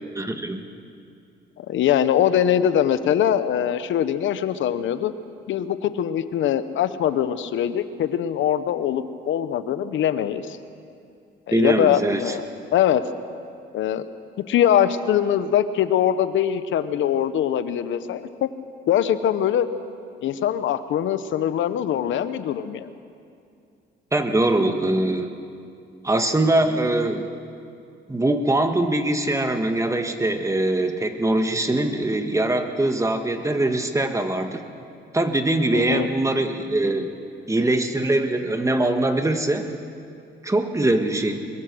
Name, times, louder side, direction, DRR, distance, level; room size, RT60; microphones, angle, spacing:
voice 1, 0.2-0.6 11.5-12.3 24.1-25.3 26.0-27.3 28.1-34.6 35.1-37.1 37.5-39.7 40.4-41.5, right 2 dB, 15° right, 6 dB, 1.8 m, -22 dB
voice 2, 1.6-5.1 5.5-10.6 11.5-12.4 12.7-13.0 13.7-14.1 14.5-18.5 18.9-19.7 20.2-22.9 35.7-36.1, left 10 dB, 75° left, 12 dB, 1.0 m, -22 dB
23.0 x 21.5 x 6.3 m, 2.4 s
cardioid pair, 90°, 20 cm